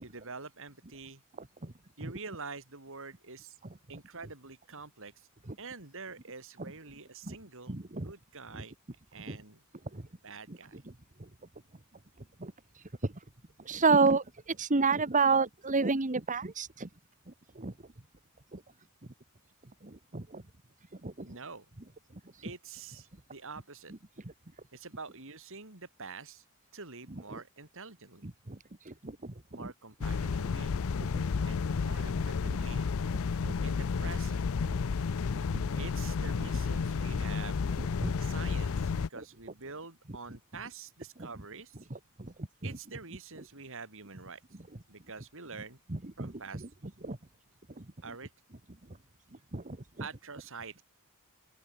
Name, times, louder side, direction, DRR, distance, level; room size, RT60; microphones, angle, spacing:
voice 1, 0.0-1.2 2.0-3.6 3.9-5.3 5.6-8.8 9.1-9.6 10.2-10.8 21.3-21.7 22.4-23.9 24.7-26.4 26.7-28.3 29.5-30.8 31.4-32.9 33.3-34.4 35.8-37.6 38.2-41.9 42.6-44.4 44.9-45.8 46.2-46.7 48.0-48.3 50.0-50.8, right 4 dB, 65° right, 5.1 m, -46 dB
voice 2, 7.7-8.1 9.3-9.4 9.9-10.0 12.4-12.5 13.7-14.2 14.6-16.9 17.6-17.7 18.5-18.6 19.8-20.4 21.0-21.3 28.5-28.6 28.9-29.3 31.1-31.2 32.5-32.6 33.4-33.5 35.5-35.6 38.0-38.1 42.2-42.3 46.2-46.3 47.0-47.2 49.5-49.8, right 4 dB, 35° right, 1.4 m, -29 dB
sound 1, 30.0-39.1, left 5 dB, 65° left, 0.5 m, -31 dB
open air
head